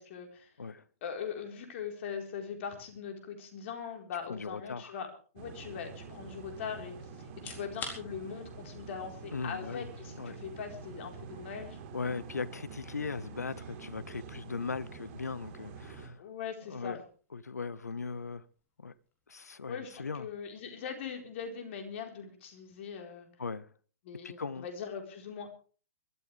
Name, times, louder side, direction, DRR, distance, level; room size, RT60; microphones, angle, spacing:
voice 1, 0.0-0.5 1.0-5.1 5.3-11.8 16.2-17.0 19.7-23.3 24.0-25.5, left 7 dB, 50° left, 4.3 m, -41 dB
voice 2, 4.3-5.0 9.3-9.9 10.1-10.4 11.9-16.2 16.7-17.0 17.3-18.4 18.8-18.9 19.3-20.3 23.4-23.7 24.2-24.7, left 4 dB, 80° left, 0.8 m, -38 dB
sound 1, 5.4-16.1, right 4 dB, 40° right, 3.9 m, -47 dB
sound 2, 7.3-22.1, left 4 dB, 20° left, 4.0 m, -54 dB
23.5 x 14.0 x 3.4 m
figure-of-eight pair, 115°, 9 cm